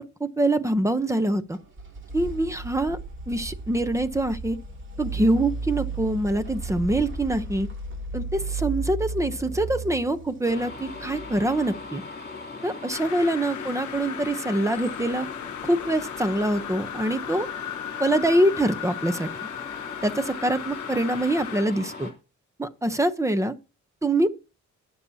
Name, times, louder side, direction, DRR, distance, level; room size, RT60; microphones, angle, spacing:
voice 1, 0.0-1.6 2.1-3.0 3.3-4.6 5.0-7.7 8.1-12.0 12.6-15.3 15.6-17.5 18.0-19.3 20.0-22.1 22.6-23.5 24.0-24.3, right 1 dB, 10° right, 0.7 m, -24 dB
sound 1, 1.5-12.3, right 3 dB, 40° right, 2.7 m, -35 dB
sound 2, 10.4-22.1, left 4 dB, 30° left, 2.9 m, -39 dB
sound 3, 12.9-21.6, left 11 dB, 70° left, 0.9 m, -37 dB
21.0 x 7.1 x 2.8 m
wide cardioid pair, 155°, 31 cm